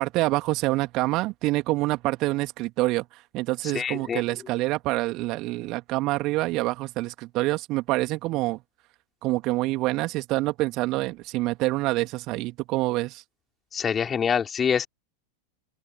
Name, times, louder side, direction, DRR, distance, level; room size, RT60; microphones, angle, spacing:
voice 1, 0.0-8.6 9.2-13.2, right 20 dB, 40° right, 2.8 m, -26 dB
voice 2, 3.7-4.2 13.7-14.9, left 7 dB, 20° left, 3.8 m, -25 dB
open air
figure-of-eight pair, 90°, 0 cm